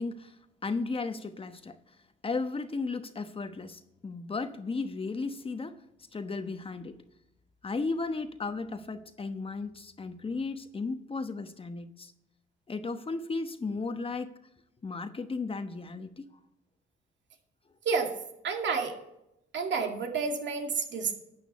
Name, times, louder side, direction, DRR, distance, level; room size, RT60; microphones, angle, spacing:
voice 1, 0.0-1.8 2.2-5.8 6.1-7.0 7.6-12.1 12.7-14.3 14.8-16.3, left 3 dB, 30° left, 8 dB, 1.0 m, -35 dB
voice 2, 17.8-18.2 18.4-19.0 19.5-21.2, right 5 dB, 65° right, 3 dB, 2.2 m, -30 dB
12.5 x 9.1 x 4.2 m, 0.85 s
cardioid pair, 90°, 20 cm